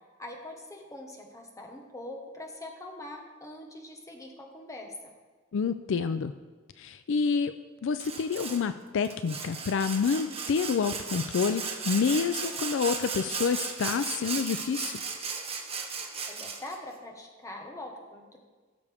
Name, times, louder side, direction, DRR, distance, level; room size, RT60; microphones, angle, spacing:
voice 1, 0.2-5.1 16.3-18.4, left 1 dB, 15° left, 1 dB, 1.3 m, -43 dB
voice 2, 5.5-6.3 6.8-7.5 7.8-15.0, left 5 dB, 65° left, 11 dB, 0.4 m, -28 dB
Sawing, 8.0-8.6 9.0-16.8, right 5 dB, 30° right, 1.2 m, -36 dB
15.5 x 6.8 x 3.5 m, 1.4 s
head